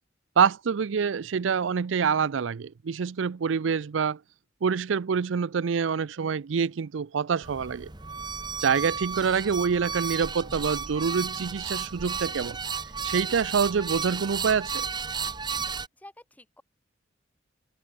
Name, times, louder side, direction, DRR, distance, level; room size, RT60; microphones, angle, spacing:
voice 1, 0.4-4.2 4.6-7.9 8.6-12.6 13.0-14.8, right 6 dB, 85° right, 0.5 m, -26 dB
sound 1, 7.4-15.9, right 5 dB, 20° right, 1.4 m, -33 dB
voice 2, 15.7-16.6, left 1 dB, 10° left, 4.4 m, -51 dB
head